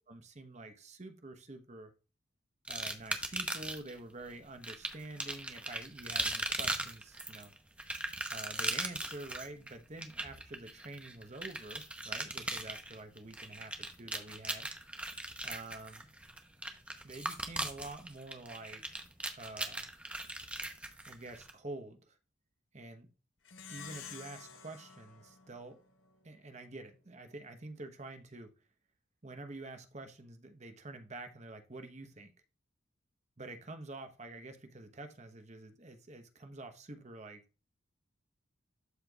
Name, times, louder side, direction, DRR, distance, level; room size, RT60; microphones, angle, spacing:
voice 1, 0.1-1.9 2.7-7.5 8.3-14.7 15.4-16.1 17.0-18.8 19.3-19.9 21.1-22.2 22.7-23.1 23.7-25.8 26.2-28.5 29.2-32.3 33.4-37.4, right 2 dB, 35° right, 1.0 m, -47 dB
sound 1, 2.7-3.9 4.6-21.5, right 1 dB, 5° right, 0.8 m, -39 dB
Plucked string instrument, 23.5-26.3, left 6 dB, 70° left, 1.2 m, -50 dB
12.5 x 4.4 x 2.4 m
head